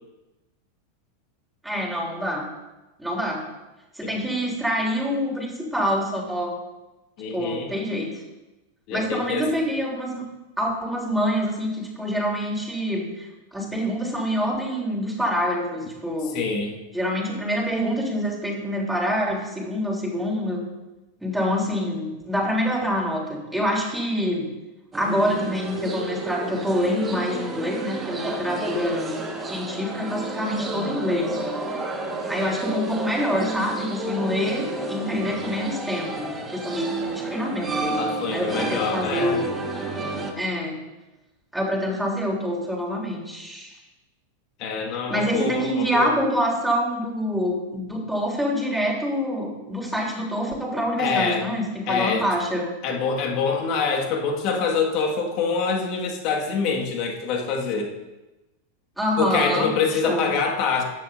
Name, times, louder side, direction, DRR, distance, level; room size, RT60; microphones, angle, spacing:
voice 1, 1.6-2.5 3.0-3.5 4.0-6.6 7.3-8.2 8.9-10.2 10.6-13.3 13.5-16.4 16.9-20.6 21.2-24.5 24.9-29.1 29.5-31.4 32.3-36.9 37.1-39.4 40.4-40.8 41.5-43.8 45.1-52.7 59.0-59.7 60.0-60.2, equal, ahead, -4 dB, 3.5 m, -26 dB
voice 2, 7.2-7.7 8.9-9.5 16.3-16.7 38.0-39.4 44.6-46.2 51.0-51.5 51.9-52.3 52.8-57.9 59.2-60.8, left 5 dB, 40° left, 1 dB, 1.9 m, -25 dB
sound 1, 24.9-40.3, right 2 dB, 15° right, 1.6 m, -31 dB
15.0 x 10.5 x 2.7 m, 1.1 s
figure-of-eight pair, 90°, 0 cm